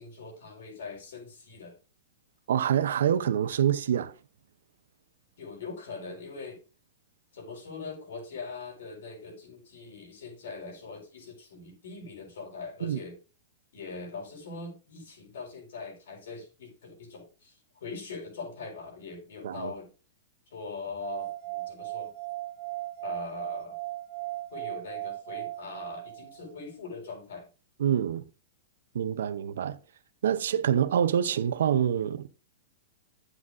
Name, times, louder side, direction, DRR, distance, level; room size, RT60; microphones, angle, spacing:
voice 1, 0.0-1.8 5.4-6.6 7.3-13.2 13.7-19.9 20.5-22.1 23.0-23.8 24.5-27.5, left 4 dB, 80° left, 4.4 m, -42 dB
voice 2, 2.5-4.1 12.8-13.0 19.4-19.7 27.8-28.2 28.9-29.8 30.2-32.3, right 9 dB, 85° right, 0.7 m, -26 dB
sound 1, 21.0-26.5, right 17 dB, 40° right, 0.5 m, -37 dB
9.7 x 7.8 x 2.6 m
supercardioid pair, 165°, 0 cm